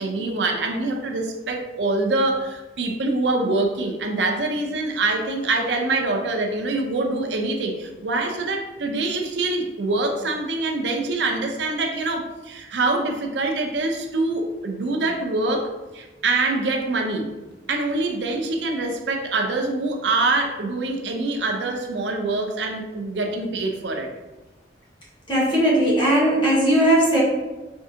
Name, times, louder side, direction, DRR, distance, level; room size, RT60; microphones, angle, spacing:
voice 1, 0.0-17.3 17.7-24.1, right 2 dB, 85° right, 4 dB, 0.6 m, -25 dB
voice 2, 25.3-27.2, right 1 dB, 25° left, -6 dB, 1.2 m, -18 dB
4.5 x 3.5 x 2.8 m, 1.1 s
head